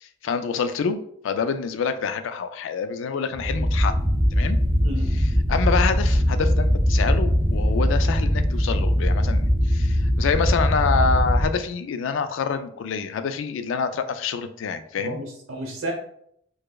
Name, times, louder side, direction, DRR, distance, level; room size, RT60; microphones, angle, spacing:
voice 1, 0.0-3.9 4.3-4.6 5.5-15.2, left 5 dB, 70° left, 10 dB, 0.3 m, -27 dB
sound 1, 3.3-11.5, equal, 10° right, 0.6 m, -21 dB
voice 2, 4.8-5.2 15.0-15.9, right 1 dB, 85° right, 2 dB, 0.9 m, -32 dB
4.6 x 2.0 x 2.2 m, 0.69 s
head